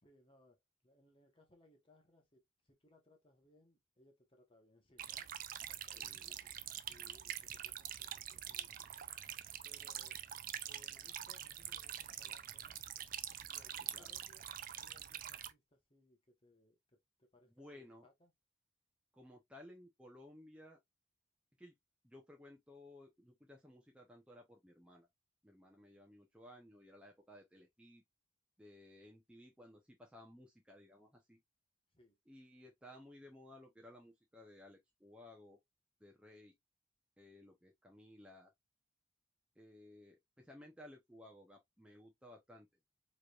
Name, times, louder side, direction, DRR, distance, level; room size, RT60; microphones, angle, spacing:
voice 1, 0.0-5.3 5.7-6.4 6.9-9.1 9.6-10.2 10.6-13.1 13.5-18.3 31.9-32.2, left 1 dB, 25° left, 1.0 m, -68 dB
sound 1, 5.0-15.5, right 11 dB, 45° right, 0.4 m, -45 dB
voice 2, 5.9-6.6 13.9-14.1 17.5-18.1 19.1-20.8 21.6-21.8 22.0-25.1 25.4-28.0 28.6-31.4 32.3-35.6 36.0-36.5 37.2-38.5 39.6-42.7, left 1 dB, 5° right, 0.7 m, -58 dB
4.9 x 3.1 x 2.3 m
head